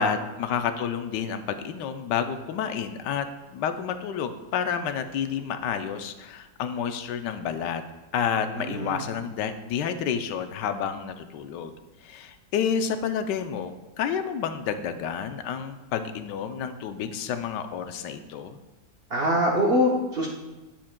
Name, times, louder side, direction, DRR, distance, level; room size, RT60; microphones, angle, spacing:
voice 1, 0.0-3.3 3.5-7.8 8.1-11.7 12.0-18.6, left 7 dB, 80° left, 9 dB, 1.2 m, -30 dB
voice 2, 8.5-9.0 19.1-20.3, equal, 45° right, -2 dB, 0.8 m, -24 dB
10.0 x 7.2 x 2.2 m, 1.1 s
omnidirectional pair, 1.8 m